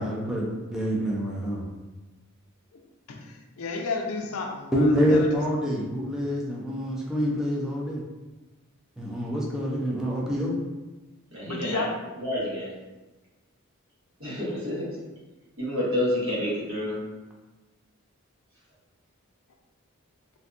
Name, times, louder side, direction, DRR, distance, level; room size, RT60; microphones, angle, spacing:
voice 1, 0.0-1.6 4.7-8.0 9.0-10.6, equal, 5° right, -5 dB, 0.4 m, -26 dB
voice 2, 3.1-5.4 11.4-11.9, left 3 dB, 80° left, 2 dB, 0.4 m, -32 dB
voice 3, 11.3-11.8 12.2-12.7 14.2-15.0 15.6-17.0, left 1 dB, 70° right, -7 dB, 1.0 m, -29 dB
2.6 x 2.2 x 2.5 m, 1.2 s
head